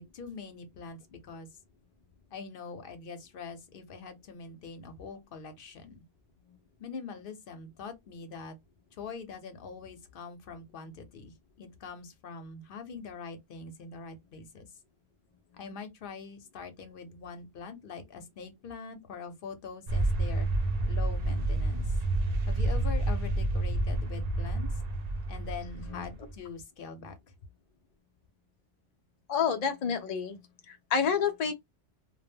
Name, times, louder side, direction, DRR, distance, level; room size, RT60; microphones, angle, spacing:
voice 1, 0.0-1.5 2.3-6.0 6.8-8.6 9.0-14.7 15.5-20.5 20.9-21.9 22.5-24.7 25.3-27.2, left 4 dB, 55° left, 0.7 m, -43 dB
sound 1, 19.9-26.3, right 2 dB, 65° right, 0.4 m, -29 dB
voice 2, 25.6-26.1 29.3-30.4 30.7-31.5, left 6 dB, 75° left, 0.3 m, -29 dB
2.1 x 2.0 x 3.4 m
omnidirectional pair, 1.2 m